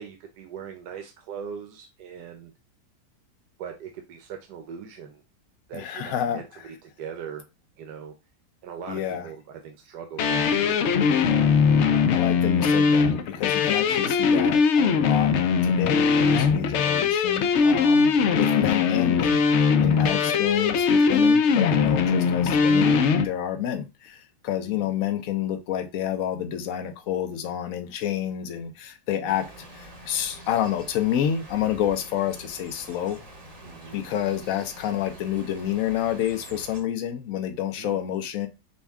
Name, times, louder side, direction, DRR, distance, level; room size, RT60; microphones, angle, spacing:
voice 1, 0.0-2.5 3.6-5.2 5.7-7.4 7.8-8.1 8.6-11.1 11.9-12.4 15.9-16.3 20.2-20.5 24.6-24.9 29.1-29.3 33.6-34.0 37.8-38.0, right 7 dB, 80° right, 1.3 m, -40 dB
voice 2, 5.7-6.4 8.9-9.2 12.1-15.3 15.6-19.5 19.8-23.0 23.2-29.5 29.8-33.2 33.9-38.5, left 10 dB, 65° left, 1.0 m, -29 dB
sound 1, 10.2-23.3, left 5 dB, 85° left, 0.6 m, -20 dB
sound 2, 29.3-36.8, right 1 dB, 30° right, 0.7 m, -45 dB
5.3 x 2.3 x 3.5 m
omnidirectional pair, 1.8 m